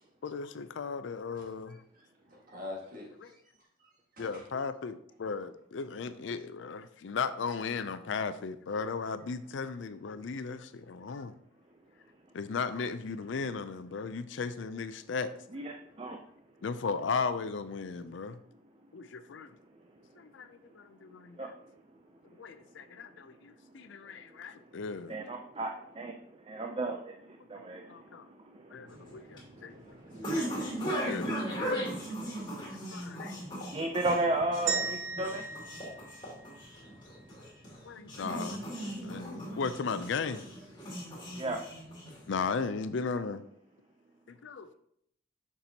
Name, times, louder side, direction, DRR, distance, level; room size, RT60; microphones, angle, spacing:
voice 1, 0.2-1.8 3.2-3.3 4.2-11.4 12.3-15.3 16.6-18.4 18.9-19.6 20.2-21.5 22.4-25.1 27.6-27.7 27.9-28.3 28.7-29.9 30.2-30.4 30.9-31.8 32.9-33.4 37.8-38.7 39.0-40.4 42.3-43.4 44.3-44.7, left 5 dB, 75° left, 0.4 m, -36 dB
voice 2, 1.9-3.4 3.8-4.4, left 2 dB, 45° right, 1.8 m, -45 dB
voice 3, 15.5-16.2 21.4-21.5 25.1-26.1 26.5-31.0 31.7-32.9 33.2-35.4 41.4-41.6, right 2 dB, 30° right, 0.5 m, -36 dB
sound 1, 28.9-42.5, equal, 25° left, 2.4 m, -38 dB
sound 2, 34.7-36.9, right 5 dB, 80° right, 1.0 m, -36 dB
6.8 x 6.0 x 2.8 m
head